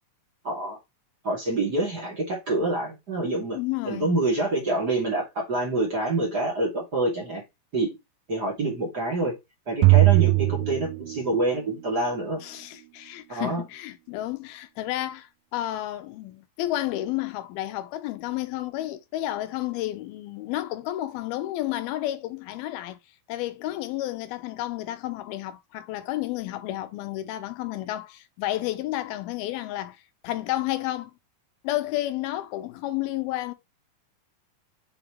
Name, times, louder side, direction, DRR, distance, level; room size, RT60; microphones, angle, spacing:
voice 1, 0.4-0.8 1.2-3.6 3.8-7.4 7.7-7.9 8.3-9.3 9.7-12.4 13.3-13.6, right 2 dB, 30° right, 2.5 m, -26 dB
voice 2, 3.5-4.1 12.4-23.0 23.3-30.0 30.2-31.1 31.6-33.5, left 15 dB, 90° left, 2.7 m, -31 dB
sound 1, 9.8-11.6, right 25 dB, 85° right, 2.4 m, -19 dB
6.9 x 5.1 x 3.1 m
omnidirectional pair, 4.2 m